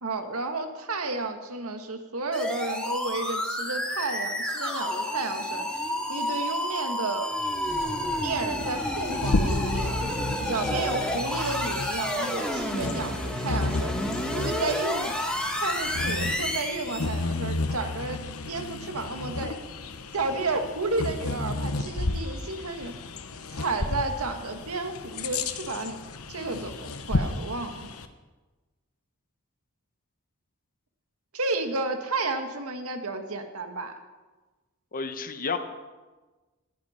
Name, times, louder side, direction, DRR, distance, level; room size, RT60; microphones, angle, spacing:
voice 1, 0.0-5.7 6.1-7.4 8.2-9.9 10.5-14.0 14.3-15.1 15.5-19.6 20.1-22.9 23.5-27.8 31.3-33.9, right 3 dB, 85° right, 6 dB, 1.9 m, -32 dB
sound 1, 2.3-17.2, equal, 5° left, 2.3 m, -30 dB
Bird vocalization bird call bird song, 8.6-28.1, left 2 dB, 85° left, 1.1 m, -32 dB
voice 2, 34.9-35.6, left 5 dB, 40° left, 8 dB, 1.2 m, -30 dB
20.0 x 15.0 x 4.5 m, 1.2 s
head